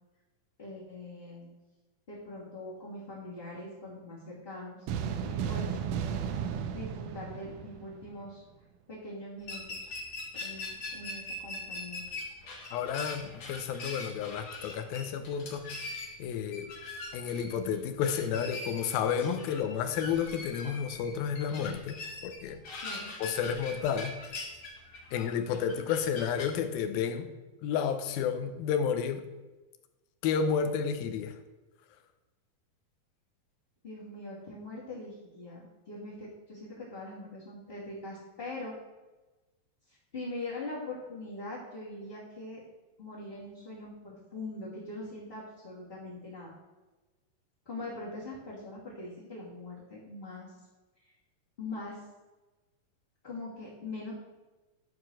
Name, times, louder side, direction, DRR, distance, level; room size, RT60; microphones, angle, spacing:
voice 1, 0.6-1.5 2.1-4.9 5.2-5.7 6.6-8.4 8.9-9.9 10.4-12.0 22.8-23.1 33.8-38.7 39.9-42.6 43.0-46.5 47.6-50.5 51.6-52.0 53.2-54.1, left 2 dB, 20° left, -7 dB, 2.1 m, -42 dB
sound 1, 4.9-8.3, right 7 dB, 80° right, 1.8 m, -34 dB
sound 2, 9.4-26.5, left 2 dB, 50° left, 1.8 m, -42 dB
voice 2, 12.7-15.6 16.2-16.7 17.1-22.6 23.2-24.2 25.1-27.3 27.6-29.2 30.2-31.3, left 7 dB, 85° left, 7 dB, 2.6 m, -31 dB
11.5 x 4.7 x 6.2 m, 1.1 s
omnidirectional pair, 4.1 m